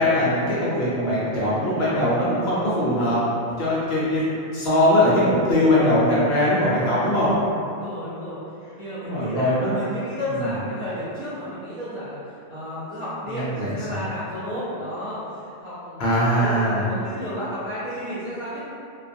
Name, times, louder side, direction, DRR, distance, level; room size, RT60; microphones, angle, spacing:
voice 1, 0.0-3.2 3.6-4.2 4.5-7.3 9.0-9.8 10.3-10.5 13.3-14.0 16.0-16.9, left 1 dB, 65° left, -8 dB, 0.7 m, -21 dB
voice 2, 7.6-8.4 8.8-12.2 12.5-18.6, equal, 45° right, -15 dB, 0.4 m, -32 dB
2.3 x 2.2 x 2.5 m, 2.6 s
omnidirectional pair, 1.4 m